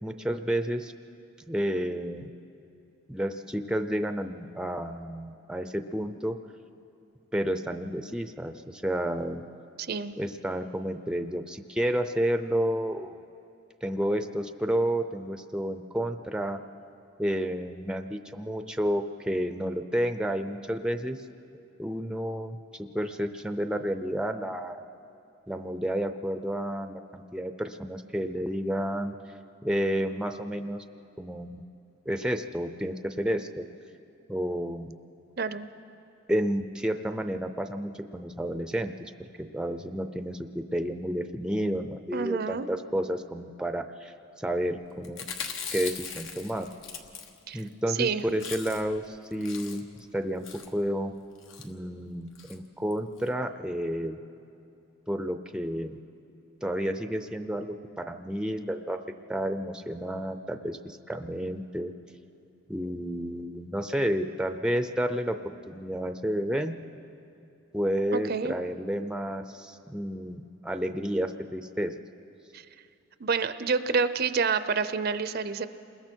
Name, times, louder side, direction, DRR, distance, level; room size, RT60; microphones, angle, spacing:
voice 1, 0.0-0.9 1.5-2.3 3.1-6.4 7.3-9.4 10.2-13.2 13.8-16.6 17.2-21.2 21.8-24.9 25.5-29.1 29.6-30.8 31.2-31.6 32.1-33.7 34.3-34.9 36.3-39.1 39.4-45.3 45.7-46.7 47.5-50.5 50.7-51.1 51.6-54.2 55.1-56.0 56.6-59.0 59.3-61.9 62.7-65.4 65.7-66.7 67.7-71.9, equal, 5° right, 8 dB, 0.5 m, -31 dB
voice 2, 9.8-10.1 35.4-35.7 42.1-42.7 47.5-47.6 47.9-48.2 68.1-68.5 72.5-72.6 73.2-75.7, right 5 dB, 50° right, 13 dB, 0.6 m, -28 dB
Chewing mastication, 45.0-47.7 48.0-48.1 48.3-49.0 49.3-50.0 50.4-50.8 51.4-51.7 52.4-52.6 52.9-53.0 53.2-53.3, left 6 dB, 75° left, 1.3 m, -39 dB
29.0 x 21.0 x 4.5 m, 2.6 s
head